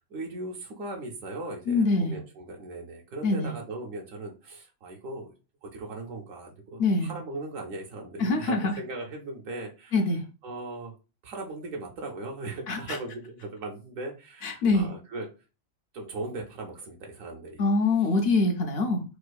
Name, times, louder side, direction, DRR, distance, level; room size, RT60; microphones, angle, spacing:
voice 1, 0.1-5.3 5.6-10.0 10.4-10.9 11.2-15.3 15.9-17.6, right 2 dB, 80° right, 1 dB, 1.0 m, -38 dB
voice 2, 1.7-2.2 3.2-3.5 6.8-7.1 8.2-8.7 9.9-10.2 12.7-13.0 14.4-14.9 17.6-19.0, left 3 dB, 60° left, 4 dB, 0.7 m, -24 dB
4.4 x 2.4 x 2.2 m, 0.32 s
omnidirectional pair, 1.4 m